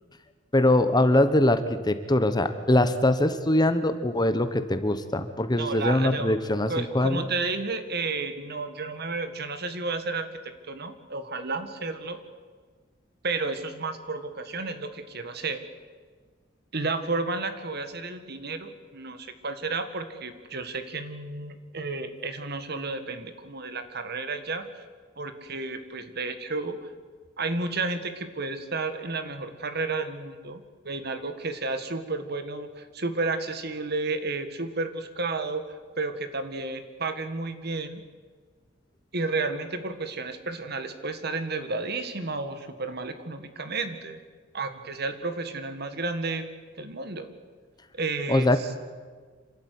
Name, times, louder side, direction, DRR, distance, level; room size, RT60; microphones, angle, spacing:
voice 1, 0.5-7.2 48.3-48.6, left 1 dB, 20° left, 10 dB, 1.1 m, -22 dB
voice 2, 5.5-6.4 6.7-12.2 13.2-15.6 16.7-24.8 25.2-26.9 27.4-38.0 39.1-44.2 44.5-46.4 46.8-47.3 47.9-48.7, right 3 dB, 55° right, 10 dB, 1.9 m, -32 dB
27.0 x 13.0 x 9.6 m, 1.5 s
head